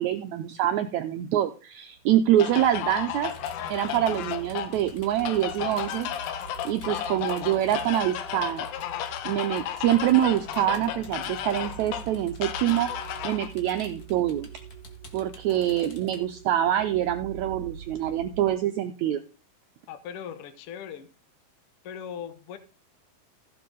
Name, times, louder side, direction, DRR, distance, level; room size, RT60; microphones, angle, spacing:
voice 1, 0.0-3.3 3.7-6.1 6.6-8.7 9.3-12.9 13.2-14.5 15.1-19.2, right 12 dB, 90° right, 8 dB, 1.6 m, -25 dB
sound 1, 1.9-18.5, right 6 dB, 55° right, 3.2 m, -45 dB
sound 2, 2.4-13.5, left 10 dB, 90° left, 2.7 m, -34 dB
sound 3, 3.2-16.2, left 3 dB, 45° left, 1.2 m, -51 dB
voice 2, 3.9-4.3 6.9-7.0 19.9-21.1 21.8-22.6, left 8 dB, 65° left, 11 dB, 1.5 m, -39 dB
15.0 x 6.9 x 3.8 m, 0.35 s
omnidirectional pair, 4.0 m